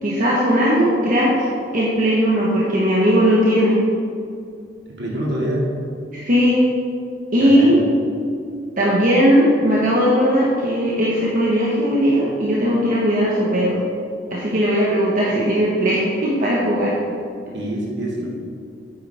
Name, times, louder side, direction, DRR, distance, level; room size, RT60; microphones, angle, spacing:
voice 1, 0.0-1.5 1.7-3.8 6.1-6.6 7.3-7.8 8.8-13.8 14.3-16.9 18.2-18.3, equal, 50° right, -6 dB, 1.4 m, -18 dB
voice 2, 4.9-5.7 7.4-7.9 17.5-18.3, right 1 dB, 65° right, -3 dB, 2.3 m, -25 dB
9.4 x 8.8 x 3.6 m, 2.4 s
head